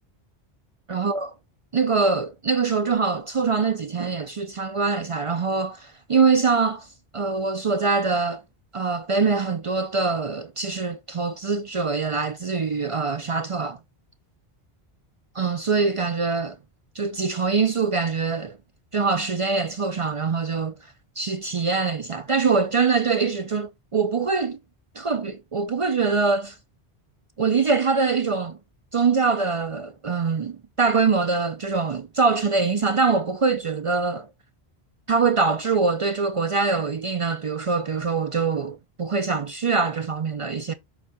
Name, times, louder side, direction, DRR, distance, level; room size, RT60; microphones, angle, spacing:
voice 1, 0.9-1.3 1.7-6.9 7.1-8.4 8.7-13.8 15.4-16.6 17.0-18.6 18.9-20.7 21.2-24.6 25.0-26.6 27.4-28.6 28.9-34.3 35.1-40.7, right 4 dB, 45° right, 0.4 m, -23 dB
7.3 x 3.5 x 4.2 m
omnidirectional pair, 1.1 m